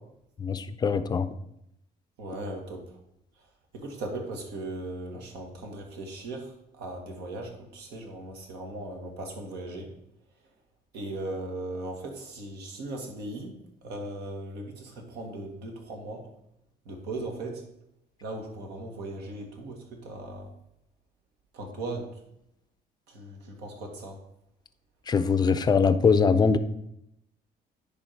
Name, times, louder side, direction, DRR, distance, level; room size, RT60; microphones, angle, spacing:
voice 1, 0.4-1.3 25.1-26.6, left 5 dB, 25° left, 12 dB, 0.5 m, -22 dB
voice 2, 2.2-2.9 3.7-9.9 10.9-13.5 13.8-16.3 16.9-17.6 18.2-20.5 21.5-22.1 23.1-24.2, right 2 dB, 80° right, 2 dB, 1.8 m, -38 dB
10.0 x 3.5 x 4.5 m, 0.78 s
cardioid pair, 110°, 17 cm